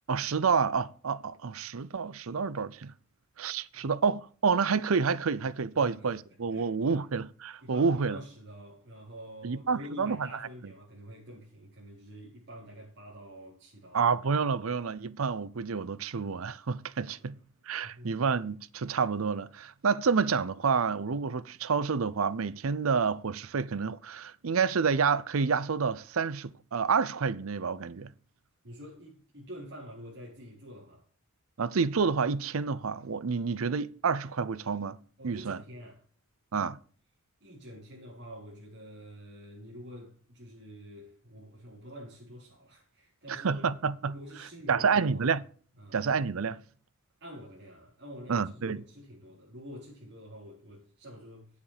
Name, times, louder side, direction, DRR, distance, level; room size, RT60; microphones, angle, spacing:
voice 1, 0.1-2.9 3.4-8.2 9.4-10.7 13.9-17.3 17.7-28.1 31.6-35.0 35.2-35.6 36.5-36.8 43.3-44.1 44.7-45.4 45.9-46.6 48.3-48.8, right 5 dB, 70° right, 0.6 m, -29 dB
voice 2, 5.7-6.1 6.5-7.0 7.6-14.1 17.2-17.4 17.8-18.2 28.6-31.0 33.5-33.7 35.2-36.0 37.4-43.7 44.1-45.3 45.8-46.0 47.2-51.5, equal, 55° right, 4.3 m, -47 dB
9.6 x 8.4 x 5.0 m
head